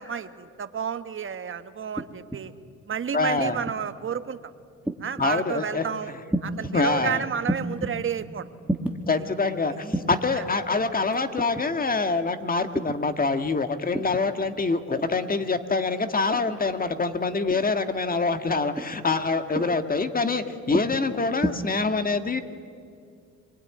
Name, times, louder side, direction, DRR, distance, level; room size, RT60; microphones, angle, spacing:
voice 1, 0.0-2.5 2.9-4.4 5.0-6.1 6.4-8.5 10.3-10.4 19.6-19.7, right 7 dB, 40° right, 11 dB, 1.2 m, -31 dB
sound 1, 2.0-2.4 3.4-3.8 4.8-5.3 6.3-6.7 7.5-7.9 8.6-9.0 9.9-10.3 11.4-11.7 12.7-13.0 13.9-14.3 15.0-15.3 16.3-16.6 17.5-17.8 18.7-19.1 19.5-19.8 20.7-21.0 21.4-21.5, right 1 dB, 5° right, 1.9 m, -30 dB
voice 2, 3.1-3.6 5.2-6.2 6.5-7.2 9.1-22.4, left 3 dB, 30° left, 8 dB, 1.7 m, -25 dB
25.5 x 20.5 x 9.7 m, 2.3 s
cardioid pair, 90°, 30 cm